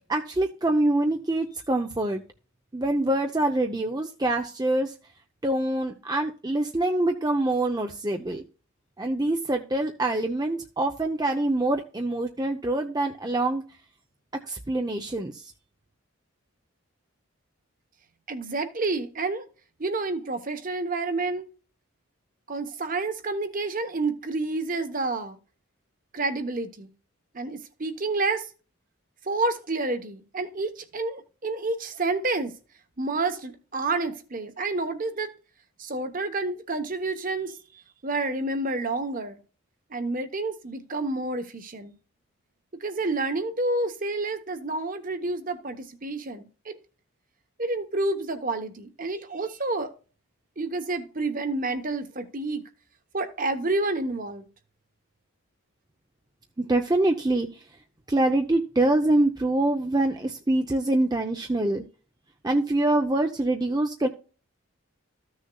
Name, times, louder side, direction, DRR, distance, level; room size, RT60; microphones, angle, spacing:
voice 1, 0.1-2.2 2.7-4.9 5.4-8.4 9.0-13.6 14.5-15.5 56.6-57.7 58.1-61.8 62.4-64.1, right 2 dB, 20° right, 0.6 m, -25 dB
voice 2, 18.3-19.4 19.8-21.5 22.5-25.4 26.1-26.9 27.3-28.5 29.2-32.5 33.0-35.3 35.8-39.4 39.9-41.9 42.8-46.8 47.6-49.9 50.6-52.6 53.1-54.5, right 2 dB, 40° right, 1.0 m, -29 dB
14.5 x 6.4 x 2.3 m
head